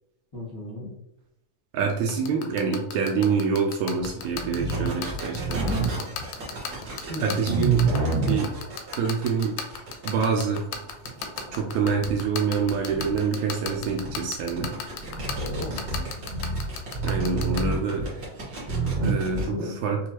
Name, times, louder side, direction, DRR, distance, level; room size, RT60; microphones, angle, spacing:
voice 1, 0.3-0.9 7.1-7.4 15.5-16.0 18.9-20.0, left 1 dB, 20° left, -9 dB, 0.8 m, -36 dB
voice 2, 1.7-5.7 7.2-7.8 8.2-8.5 8.9-9.6 10.0-10.6 11.5-14.7 17.0-18.1 19.0-19.5 19.8-20.0, right 5 dB, 75° right, 1 dB, 1.8 m, -26 dB
sound 1, 2.1-17.6, left 8 dB, 80° left, 1.8 m, -33 dB
sound 2, 4.0-19.5, right 3 dB, 45° right, 1.3 m, -29 dB
6.2 x 2.7 x 2.9 m, 0.84 s
omnidirectional pair, 3.7 m